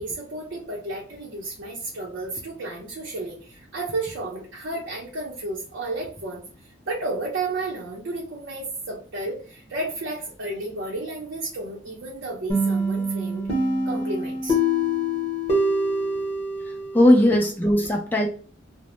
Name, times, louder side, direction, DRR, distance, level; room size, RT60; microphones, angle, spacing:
voice 1, 0.0-13.5 13.9-14.6, right 2 dB, 75° right, -4 dB, 0.6 m, -32 dB
sound 1, 12.5-17.2, equal, 30° left, 0.8 m, -25 dB
voice 2, 16.9-18.3, left 1 dB, 10° left, 0 dB, 0.3 m, -18 dB
2.1 x 2.0 x 2.9 m, 0.42 s
head